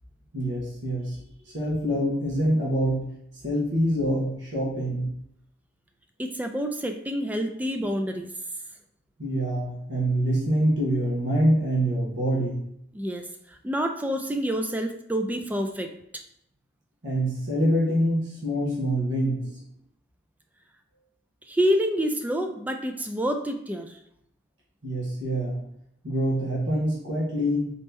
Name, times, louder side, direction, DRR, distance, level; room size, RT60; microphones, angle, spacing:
voice 1, 0.3-1.2 1.5-3.1 3.4-5.1 9.2-12.6 17.0-19.6 24.8-25.6 26.0-27.7, equal, 75° right, -6 dB, 1.4 m, -25 dB
voice 2, 6.2-8.3 12.9-16.0 21.5-24.0, equal, 10° right, 5 dB, 0.3 m, -28 dB
4.3 x 3.0 x 3.5 m, 0.74 s
head